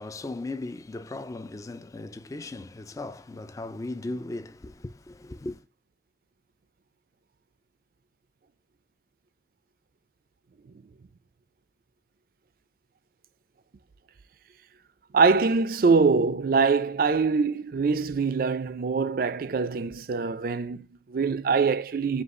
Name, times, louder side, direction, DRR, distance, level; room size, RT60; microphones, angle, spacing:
voice 1, 0.0-5.6, left 2 dB, 20° left, 0.3 m, -37 dB
voice 2, 15.1-22.2, right 4 dB, 55° right, 0.4 m, -24 dB
5.3 x 2.4 x 3.7 m
head